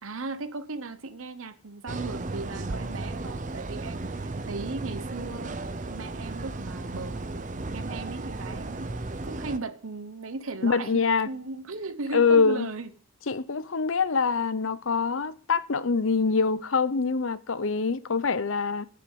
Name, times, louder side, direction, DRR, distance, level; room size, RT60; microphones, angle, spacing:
voice 1, 0.0-5.6 5.9-8.9 9.2-12.9, right 3 dB, 70° right, 0.9 m, -37 dB
sound 1, 1.9-9.6, right 2 dB, 35° right, 0.7 m, -35 dB
voice 2, 10.6-11.3 12.1-12.7 13.3-18.8, left 5 dB, 65° left, 0.7 m, -24 dB
9.5 x 6.9 x 7.9 m
head